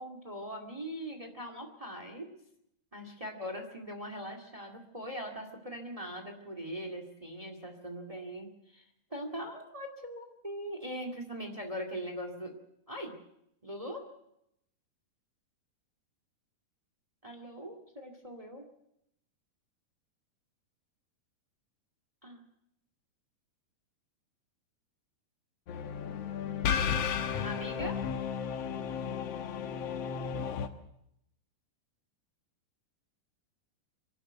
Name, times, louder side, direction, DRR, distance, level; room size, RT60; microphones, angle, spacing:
voice 1, 0.0-2.3 2.9-8.8 9.1-12.6 12.9-13.2 13.6-14.1 17.2-18.6 22.2-22.5 27.4-28.0, equal, 20° right, 6 dB, 0.8 m, -41 dB
sound 1, 25.7-30.7, left 7 dB, 75° left, 1.4 m, -33 dB
24.5 x 12.0 x 8.9 m, 0.79 s
omnidirectional pair, 4.5 m